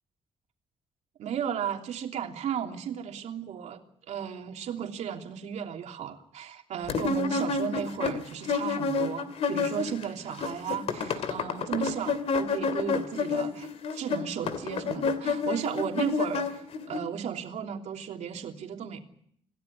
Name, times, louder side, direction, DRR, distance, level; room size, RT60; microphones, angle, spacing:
voice 1, 1.2-19.0, right 8 dB, 75° right, 3 dB, 3.1 m, -35 dB
sound 1, 6.9-10.0 10.3-17.0, left 4 dB, 60° left, 2.4 m, -29 dB
27.5 x 16.5 x 9.8 m, 0.68 s
wide cardioid pair, 170°, 12 cm